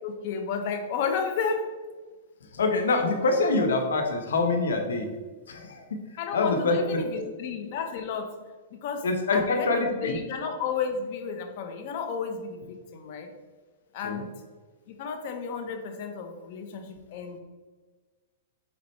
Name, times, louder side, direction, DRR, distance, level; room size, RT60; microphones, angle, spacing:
voice 1, 0.0-1.7 6.2-8.4 8.7-9.1 9.3-13.3 13.9-14.3 14.9-17.4, left 5 dB, 50° left, 6 dB, 1.0 m, -32 dB
voice 2, 2.4-5.1 5.5-7.2 9.0-10.2 14.0-14.2, left 3 dB, 90° left, 4 dB, 1.2 m, -26 dB
7.4 x 4.3 x 3.2 m, 1.4 s
hypercardioid pair, 145°, 0 cm